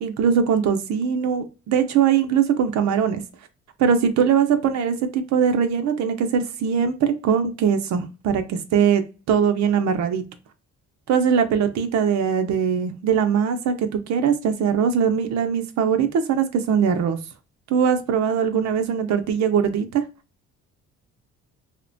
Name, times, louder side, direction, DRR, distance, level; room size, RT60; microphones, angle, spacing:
voice 1, 0.0-3.2 3.8-10.2 11.1-17.2 17.7-20.0, right 7 dB, 65° right, 0.5 m, -21 dB
2.8 x 2.1 x 2.6 m
cardioid pair, 90°, 30 cm